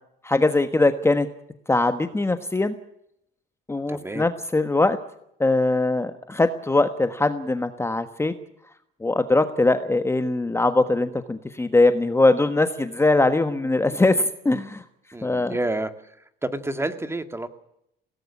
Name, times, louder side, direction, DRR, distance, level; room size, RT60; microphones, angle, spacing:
voice 1, 0.2-1.3 1.7-2.7 3.7-5.0 5.4-8.3 9.0-14.8 15.2-15.5, left 2 dB, 15° left, 9 dB, 1.3 m, -21 dB
voice 2, 3.9-4.3 15.1-16.2 16.4-17.5, right 2 dB, 10° right, 9 dB, 1.8 m, -29 dB
18.0 x 17.5 x 9.8 m, 0.76 s
cardioid pair, 105°, 20 cm